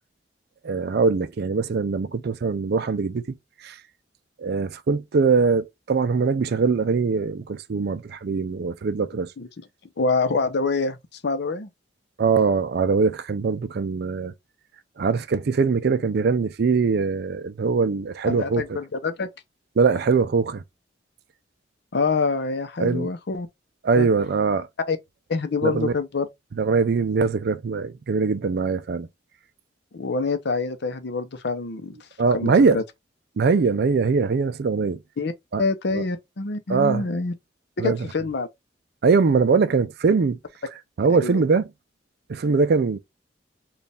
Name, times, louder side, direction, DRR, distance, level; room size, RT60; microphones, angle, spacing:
voice 1, 0.6-3.2 3.6-3.8 4.4-9.3 12.2-14.3 15.0-18.8 19.8-20.6 22.8-23.1 23.8-24.7 25.6-25.9 26.6-29.1 32.2-32.8 33.4-35.0 35.5-35.6 35.9-36.0 36.7-37.1 37.8-38.0 39.0-40.4 41.0-41.7 42.3-43.0, right 4 dB, 60° right, 0.4 m, -22 dB
voice 2, 10.0-11.0 11.2-11.7 18.3-19.3 21.9-23.5 24.0-24.1 24.9-25.0 25.3-26.3 29.9-32.0 32.3-32.8 35.2-35.3 35.6-37.3 37.8-38.5 41.1-41.4, left 4 dB, 65° left, 0.6 m, -26 dB
4.1 x 2.4 x 3.4 m
head